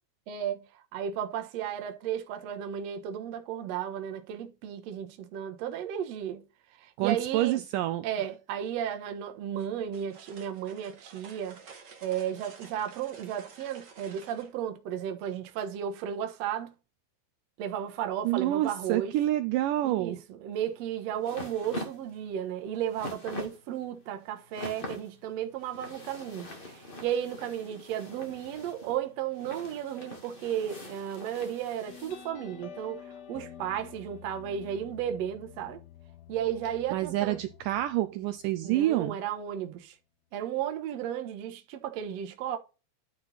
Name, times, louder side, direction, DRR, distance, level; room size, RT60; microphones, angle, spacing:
voice 1, 0.3-6.4 6.7-7.6 8.0-11.6 12.0-16.7 17.6-19.1 19.8-35.8 36.3-37.4 38.6-40.0 40.3-42.6, right 9 dB, 65° right, 1.7 m, -34 dB
voice 2, 7.0-8.1 18.2-20.2 36.9-39.2, right 14 dB, 85° right, 1.9 m, -28 dB
sound 1, 9.6-14.5, right 5 dB, 45° right, 1.4 m, -51 dB
sound 2, 20.6-32.3, left 1 dB, 85° left, 0.4 m, -44 dB
sound 3, 31.9-39.0, left 10 dB, 60° left, 2.0 m, -49 dB
11.0 x 4.2 x 4.1 m
omnidirectional pair, 4.4 m